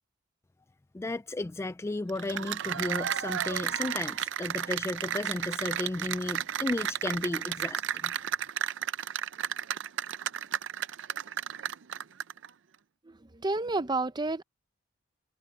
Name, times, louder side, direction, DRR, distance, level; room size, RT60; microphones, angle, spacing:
voice 1, 0.9-8.1, left 2 dB, 15° left, 0.3 m, -34 dB
Cheering / Applause, 2.1-12.5, right 9 dB, 65° right, 0.5 m, -33 dB
voice 2, 13.1-14.4, right 2 dB, 20° right, 0.6 m, -30 dB
head